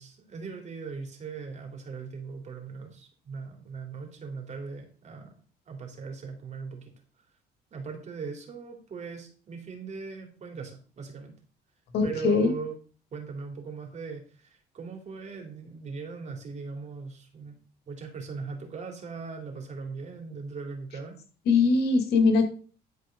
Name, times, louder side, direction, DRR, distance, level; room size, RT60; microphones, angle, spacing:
voice 1, 0.0-5.3 5.7-6.9 7.7-11.3 12.0-12.8 13.1-21.2, right 5 dB, 45° right, 3 dB, 3.1 m, -39 dB
voice 2, 11.9-12.5 21.5-22.5, left 4 dB, 75° left, 6 dB, 2.3 m, -21 dB
11.5 x 4.8 x 5.3 m, 0.40 s
cardioid pair, 110°, 17 cm